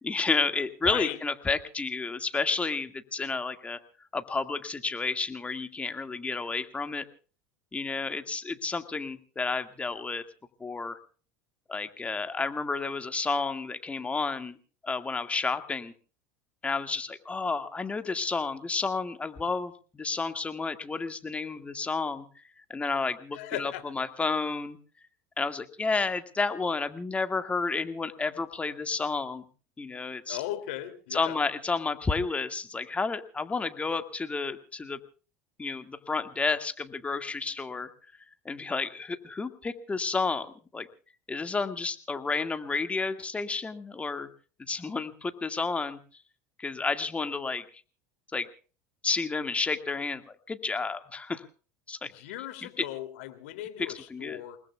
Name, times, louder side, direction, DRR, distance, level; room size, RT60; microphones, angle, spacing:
voice 1, 0.0-3.8 4.1-7.1 7.7-10.2 10.6-11.0 11.7-14.6 14.8-15.9 16.6-24.8 25.4-29.4 29.8-30.4 31.1-35.0 35.6-37.9 38.5-40.5 40.7-40.9 41.3-44.3 44.6-46.0 46.6-47.7 48.3-48.5 49.0-51.4 51.9-52.1 52.6-52.8 53.8-54.4, left 4 dB, 20° left, 9 dB, 2.0 m, -31 dB
voice 2, 0.8-1.2 23.3-23.8 30.3-31.4 52.0-54.6, left 13 dB, 75° left, 9 dB, 2.9 m, -37 dB
29.0 x 19.5 x 2.4 m, 0.38 s
hypercardioid pair, 85°, 7 cm